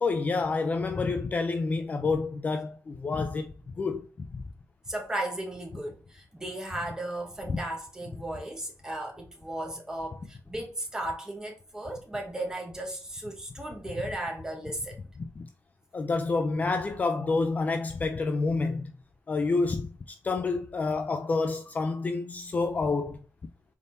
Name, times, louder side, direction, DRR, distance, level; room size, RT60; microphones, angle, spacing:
voice 1, 0.0-3.5 3.8-4.1 4.3-4.4 7.5-7.6 15.4-15.5 15.9-18.9 19.3-23.2, left 3 dB, 30° left, 0.3 m, -28 dB
voice 2, 4.9-14.9, right 1 dB, 10° right, 1.2 m, -35 dB
4.0 x 3.6 x 2.6 m
wide cardioid pair, 140°, 6 cm